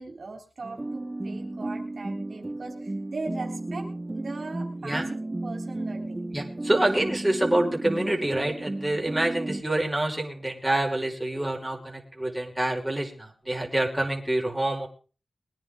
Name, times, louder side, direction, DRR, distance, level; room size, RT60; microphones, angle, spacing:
voice 1, 0.0-3.9 4.1-6.2, right 3 dB, 65° right, 2 dB, 3.8 m, -39 dB
sound 1, 0.6-9.6, right 2 dB, 30° right, 1.2 m, -34 dB
voice 2, 6.3-14.9, right 1 dB, 10° right, 0 dB, 5.2 m, -27 dB
22.5 x 9.8 x 3.8 m, 0.37 s
cardioid pair, 45°, 0 cm